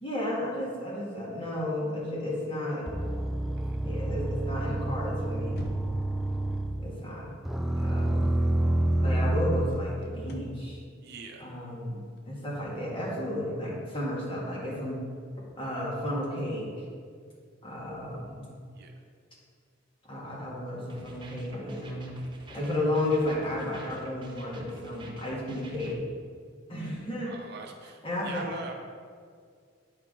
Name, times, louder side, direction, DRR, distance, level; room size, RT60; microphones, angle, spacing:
voice 1, 0.0-2.9 3.8-5.7 6.8-7.3 7.8-8.3 9.0-10.8 11.4-15.0 15.6-16.7 17.6-18.6 20.1-22.1 22.5-26.0 26.7-27.3 28.0-28.5, left 1 dB, 30° left, -5 dB, 1.7 m, -33 dB
sound 1, 2.9-7.0 7.4-9.7, right 1 dB, ahead, 0.3 m, -28 dB
voice 2, 3.6-3.9 11.0-11.5 18.7-18.9 27.3-28.7, right 3 dB, 60° right, 2 dB, 0.7 m, -42 dB
sound 2, 5.5-6.2 8.0-8.1 8.5-8.6 9.3-12.9, left 1 dB, 60° left, 0.8 m, -45 dB
sound 3, 20.9-25.9, right 1 dB, 25° right, 0.8 m, -50 dB
9.4 x 4.6 x 3.7 m, 2.1 s
head